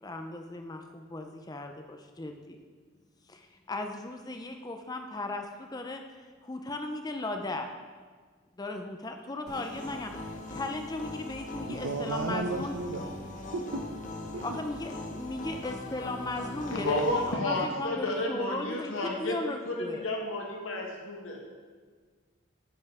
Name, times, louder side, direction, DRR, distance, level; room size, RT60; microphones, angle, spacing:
voice 1, 0.0-2.6 3.3-6.0 6.4-7.7 8.6-12.7 14.4-20.1, left 2 dB, 20° left, 5 dB, 0.5 m, -37 dB
sound 1, 9.5-17.3, left 2 dB, 35° left, 0.9 m, -40 dB
voice 2, 11.7-13.8 14.3-14.6, right 3 dB, 90° right, 7 dB, 0.7 m, -34 dB
voice 3, 16.7-21.5, left 1 dB, 80° left, 0 dB, 1.6 m, -31 dB
8.8 x 5.4 x 4.8 m, 1.5 s
head